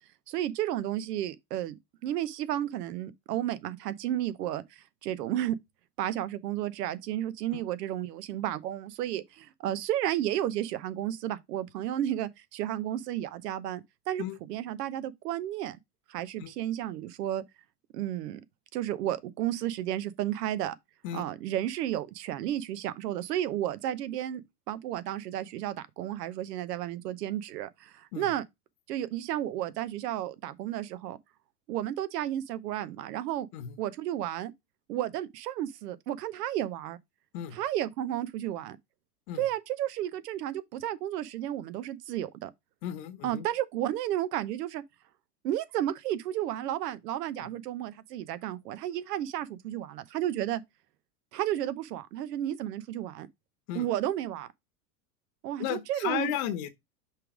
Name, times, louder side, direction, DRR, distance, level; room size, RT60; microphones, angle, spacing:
voice 1, 0.3-5.6 6.0-15.8 16.1-17.4 17.9-18.4 18.7-20.7 21.1-28.4 28.9-31.2 31.7-33.5 33.8-34.5 34.9-37.0 37.5-38.8 39.4-42.5 43.2-44.8 45.4-50.6 51.3-53.3 53.7-54.5 55.4-56.3, right 12 dB, 80° right, 0.9 m, -32 dB
voice 2, 42.8-43.5 47.4-47.5 53.7-53.8 55.6-56.7, left 11 dB, 60° left, 1.3 m, -34 dB
5.8 x 3.4 x 4.9 m
supercardioid pair, 120°, 48 cm